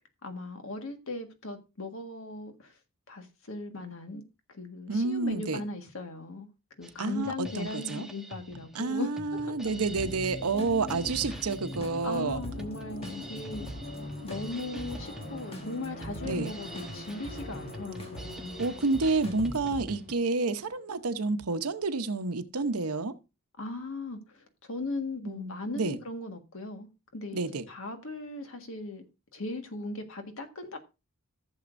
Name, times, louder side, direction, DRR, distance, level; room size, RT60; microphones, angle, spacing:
voice 1, 0.2-2.7 3.1-4.2 4.5-6.5 6.8-9.5 11.3-11.4 12.0-13.7 14.2-18.5 23.6-29.0 29.3-30.8, left 2 dB, 65° left, 1.7 m, -38 dB
voice 2, 4.9-5.6 7.0-8.1 8.7-12.4 16.2-16.5 18.6-23.1 25.3-26.0 27.3-27.7, right 3 dB, 85° right, 0.9 m, -29 dB
Drum kit, 6.8-20.1, equal, ahead, 1.1 m, -46 dB
sound 1, 9.6-21.2, left 1 dB, 45° left, 2.7 m, -43 dB
sound 2, 9.9-19.8, equal, 25° left, 1.6 m, -44 dB
15.0 x 7.1 x 2.6 m
head